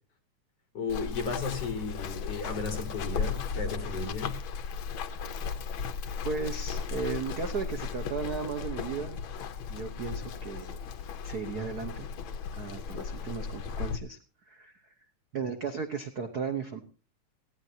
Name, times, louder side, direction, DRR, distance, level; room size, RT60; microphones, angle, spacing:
voice 1, 0.7-4.3, left 4 dB, 50° left, 4 dB, 4.4 m, -34 dB
Run, 0.9-14.0, left 6 dB, 85° left, 1.1 m, -36 dB
voice 2, 6.2-9.2 9.7-10.8 11.2-12.1 12.5-14.2 14.5-14.7 15.3-16.8, right 5 dB, 70° right, 6 dB, 0.9 m, -35 dB
18.5 x 16.0 x 2.8 m, 0.39 s
omnidirectional pair, 3.5 m